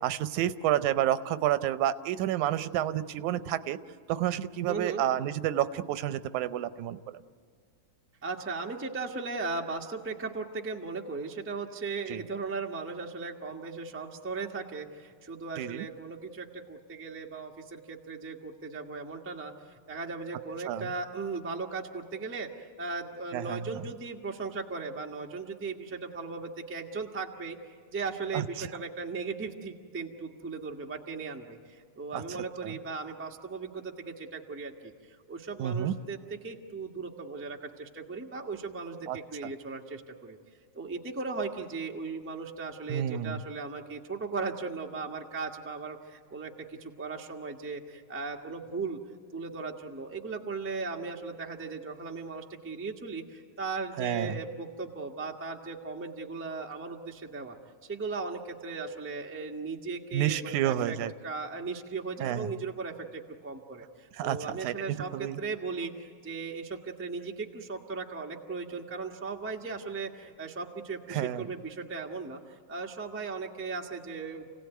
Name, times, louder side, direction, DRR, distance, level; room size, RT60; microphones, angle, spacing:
voice 1, 0.0-3.8 4.1-7.2 12.1-12.2 15.6-15.9 20.7-20.9 23.3-23.8 28.3-28.7 32.1-32.2 32.6-32.7 35.6-36.0 39.1-39.2 42.9-43.4 54.0-54.4 60.1-61.1 62.2-62.5 64.2-64.7 65.1-65.4 71.1-71.5, right 11 dB, 90° right, 13 dB, 2.2 m, -30 dB
voice 2, 4.6-5.0 8.2-27.6 27.9-40.4 40.7-49.0 49.3-57.5 57.8-61.0 61.2-74.5, right 4 dB, 15° right, 1 dB, 0.4 m, -37 dB
28.5 x 17.0 x 9.2 m, 2.1 s
omnidirectional pair, 3.4 m